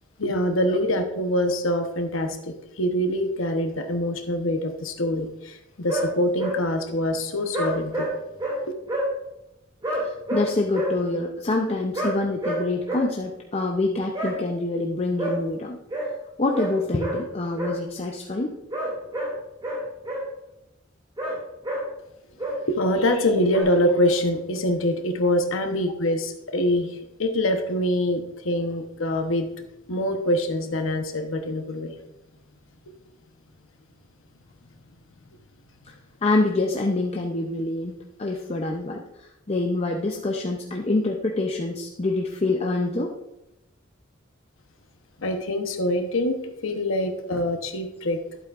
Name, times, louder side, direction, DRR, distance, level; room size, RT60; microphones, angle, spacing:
voice 1, 0.2-8.1 22.7-29.5 29.9-31.9 45.2-46.4 46.6-48.2, left 1 dB, 75° left, 5 dB, 1.0 m, -24 dB
sound 1, 5.9-6.1 6.4-6.6 7.5-8.1 8.4-8.6 8.9-9.1 9.8-10.9 11.9-12.1 12.4-12.6 12.9-13.1 14.1-14.3 15.2-15.3 15.9-16.1 16.5-16.7 17.0-17.2 17.6-17.8 18.7-19.3 19.6-20.2 21.2-21.4 21.6-21.8 22.4-22.6 23.5-23.6, right 1 dB, 20° right, 2.6 m, -28 dB
voice 2, 10.0-15.8 16.4-18.5 36.2-43.1, left 2 dB, 30° left, 1 dB, 0.6 m, -26 dB
11.5 x 8.1 x 2.5 m, 0.88 s
head